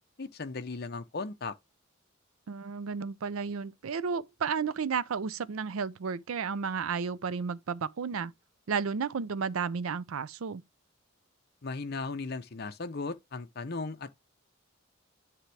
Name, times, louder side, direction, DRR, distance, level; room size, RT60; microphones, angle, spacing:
voice 1, 0.2-1.6 11.6-14.2, left 3 dB, 50° left, 0.7 m, -37 dB
voice 2, 2.5-8.3 8.7-10.6, right 6 dB, 80° right, 0.5 m, -32 dB
9.8 x 3.5 x 3.3 m
head